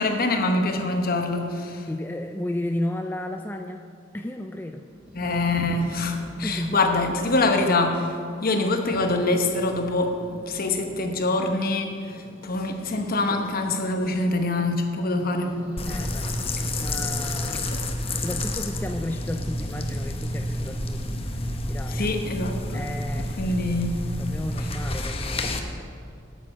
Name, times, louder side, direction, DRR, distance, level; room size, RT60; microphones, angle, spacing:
voice 1, 0.0-1.9 5.1-10.2 10.5-15.6 21.9-22.8 23.2-24.0 24.6-24.7, left 2 dB, 50° left, 5 dB, 1.0 m, -25 dB
voice 2, 1.9-3.9 4.1-4.8 6.4-6.8 15.8-16.3 16.8-17.7 18.2-22.1 22.7-23.4 24.2-25.4, left 1 dB, 10° left, 5 dB, 0.3 m, -33 dB
Growling, 4.9-8.6 8.9-11.3 11.8-17.7 18.0-18.7 19.2-22.9, equal, 5° right, 1.7 m, -45 dB
sound 1, 15.8-25.6, left 1 dB, 30° left, 0.8 m, -29 dB
8.8 x 8.5 x 6.2 m, 2.4 s
head